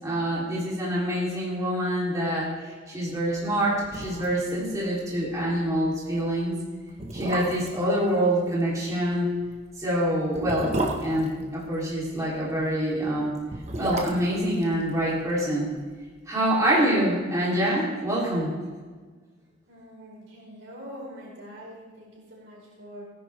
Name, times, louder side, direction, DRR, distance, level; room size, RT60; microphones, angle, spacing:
voice 1, 0.0-2.5 2.9-6.5 7.1-9.3 9.8-13.4 13.8-15.7 16.3-18.5, right 1 dB, 20° right, -7 dB, 3.4 m, -26 dB
sound 1, 3.5-3.6 3.8-4.5 4.8-4.9 5.3-5.5 6.2-6.3 6.9-7.8 9.3-12.0 13.3-15.5 15.8-15.9, right 2 dB, 35° right, 1.4 m, -32 dB
voice 2, 19.7-23.0, equal, 80° right, -4 dB, 4.7 m, -44 dB
17.5 x 10.5 x 3.5 m, 1.4 s
head